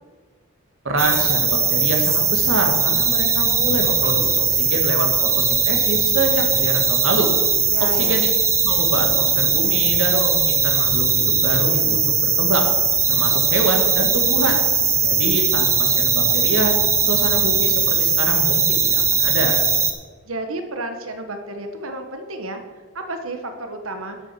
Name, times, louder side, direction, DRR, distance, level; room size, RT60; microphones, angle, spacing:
voice 1, 0.8-7.3 7.8-8.3 8.6-11.1 11.4-12.7 13.1-14.6 15.0-16.8 17.1-19.6, right 2 dB, 70° right, 3 dB, 1.9 m, -25 dB
sound 1, 1.0-19.9, right 5 dB, 15° right, 0.8 m, -19 dB
voice 2, 7.7-8.3 20.2-22.6 22.9-24.2, right 2 dB, 85° right, 5 dB, 1.4 m, -31 dB
12.0 x 6.4 x 6.0 m, 1.4 s
head